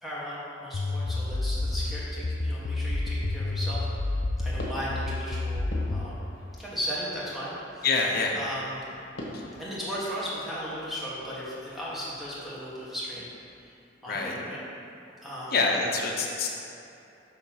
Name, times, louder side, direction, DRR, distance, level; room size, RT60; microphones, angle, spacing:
voice 1, 0.0-3.9 4.4-6.2 6.6-7.9 8.3-9.0 9.5-13.3 13.6-13.8 14.0-14.6 15.2-15.6, equal, ahead, -8 dB, 1.4 m, -36 dB
sound 1, 0.7-6.1, left 2 dB, 35° left, 0.3 m, -29 dB
sound 2, 4.4-13.3, left 1 dB, 80° left, 1.2 m, -46 dB
voice 2, 7.8-8.4 9.3-9.4 14.1-14.3 15.5-16.5, left 3 dB, 55° left, -1 dB, 0.8 m, -26 dB
6.3 x 3.2 x 5.9 m, 2.7 s
head